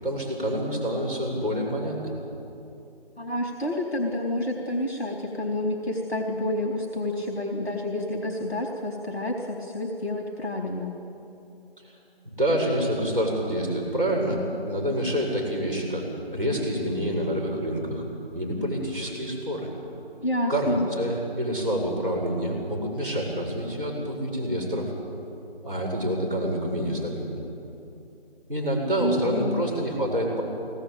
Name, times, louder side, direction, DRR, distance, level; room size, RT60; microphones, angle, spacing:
voice 1, 0.0-2.1 12.4-18.0 18.3-19.7 20.5-24.9 25.6-27.4 28.5-30.4, equal, 5° left, -18 dB, 6.3 m, -27 dB
voice 2, 3.2-10.9 20.2-20.9 29.0-29.6, left 1 dB, 85° left, 0 dB, 4.0 m, -29 dB
21.5 x 19.0 x 9.1 m, 2.8 s
figure-of-eight pair, 180°, 31 cm